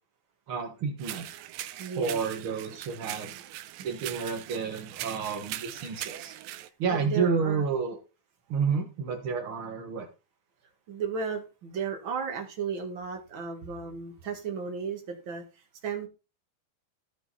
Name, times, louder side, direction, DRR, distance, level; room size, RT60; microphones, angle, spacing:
voice 1, 0.5-1.3 1.9-3.3 3.8-6.3 6.8-8.0 8.5-10.1, right 5 dB, 60° right, 2 dB, 1.4 m, -30 dB
sound 1, 1.0-6.7, right 14 dB, 80° right, 2.2 m, -40 dB
voice 2, 1.8-2.2 6.9-7.6 10.9-15.4 15.8-16.1, right 6 dB, 45° right, 3 dB, 1.9 m, -34 dB
15.0 x 5.3 x 4.2 m, 0.31 s
omnidirectional pair, 4.3 m